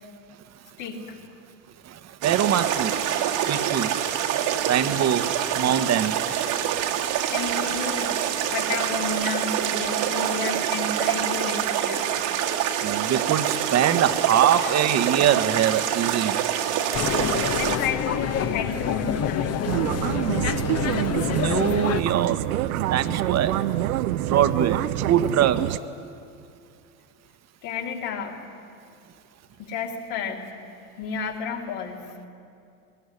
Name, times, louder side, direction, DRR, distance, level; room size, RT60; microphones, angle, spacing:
voice 1, 0.8-1.2 7.3-8.1 8.5-12.0 14.6-14.8 17.5-19.9 27.6-28.4 29.6-30.5 31.0-32.1, left 5 dB, 65° left, 1 dB, 3.5 m, -31 dB
voice 2, 1.8-2.9 3.5-4.0 4.7-6.8 12.8-16.4 21.3-22.4 22.9-23.6 24.3-24.8 25.1-25.8, right 9 dB, 40° right, 11 dB, 1.4 m, -23 dB
sound 1, 2.2-17.8, right 10 dB, 60° right, 2.1 m, -26 dB
sound 2, 16.9-22.0, left 8 dB, 35° left, 1.2 m, -27 dB
sound 3, 19.7-25.8, right 14 dB, 80° right, 0.7 m, -26 dB
20.0 x 19.5 x 10.0 m, 2.5 s
hypercardioid pair, 95°, 42 cm